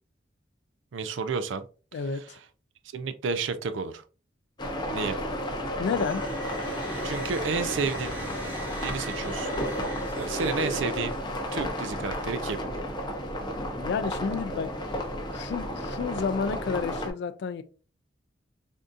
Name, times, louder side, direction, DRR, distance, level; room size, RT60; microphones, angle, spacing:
voice 1, 0.9-1.7 2.9-4.0 4.9-5.2 7.0-8.1 8.8-9.5 10.2-11.2 11.5-12.6, right 5 dB, 85° right, 0.4 m, -31 dB
voice 2, 1.9-2.4 5.8-6.2 13.8-14.7 15.3-17.6, left 5 dB, 65° left, 0.3 m, -30 dB
sound 1, 4.6-17.1, equal, 25° left, 0.6 m, -32 dB
sound 2, 5.9-11.5, right 1 dB, 10° right, 1.0 m, -40 dB
3.5 x 2.6 x 2.4 m
head